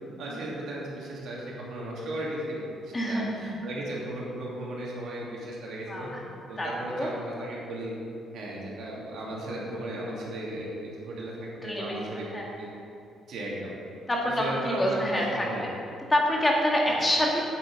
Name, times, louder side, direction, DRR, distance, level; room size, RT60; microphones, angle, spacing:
voice 1, 0.2-6.1 6.5-7.9 8.3-12.3 12.6-12.7 13.3-13.7 14.4-15.6, right 1 dB, 75° right, -4 dB, 2.5 m, -36 dB
voice 2, 2.9-3.4 5.9-6.3 6.6-7.1 11.6-12.5 14.1-15.7 16.1-17.4, equal, 20° left, -2 dB, 2.0 m, -27 dB
8.6 x 8.0 x 5.3 m, 2.7 s
cardioid pair, 90°, 0 cm